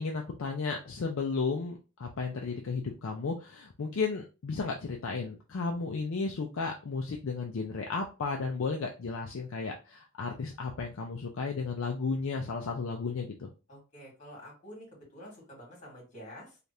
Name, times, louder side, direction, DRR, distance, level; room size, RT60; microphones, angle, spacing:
voice 1, 0.0-13.5, left 4 dB, 65° left, 1 dB, 0.4 m, -34 dB
voice 2, 13.7-16.6, equal, 35° left, -2 dB, 1.8 m, -48 dB
3.3 x 2.4 x 2.7 m, 0.31 s
head